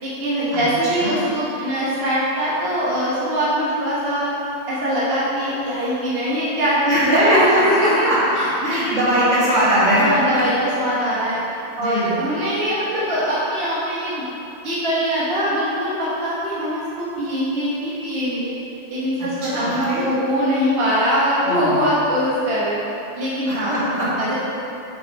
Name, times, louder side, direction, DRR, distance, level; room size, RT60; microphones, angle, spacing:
voice 1, 0.0-4.3 4.7-9.0 10.0-11.4 11.8-14.2 14.6-16.8 17.2-18.5 18.9-22.8 23.1-23.7 24.2-24.3, equal, 55° right, -9 dB, 1.5 m, -22 dB
voice 2, 6.9-10.4 11.1-11.2 11.8-12.2 19.4-20.1 21.4-21.9 23.5-24.1, equal, 80° right, -9 dB, 2.1 m, -21 dB
6.8 x 6.1 x 4.1 m, 2.9 s
omnidirectional pair, 1.2 m